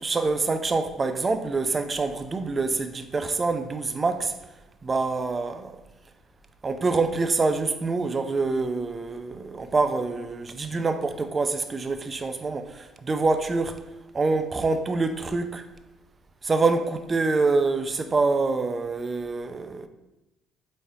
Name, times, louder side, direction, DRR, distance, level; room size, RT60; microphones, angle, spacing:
voice 1, 0.0-4.3 4.8-5.7 6.6-13.8 14.1-15.6 16.4-19.9, right 3 dB, 30° right, 0.4 m, -26 dB
4.6 x 3.1 x 2.7 m
hypercardioid pair, 55°, 0 cm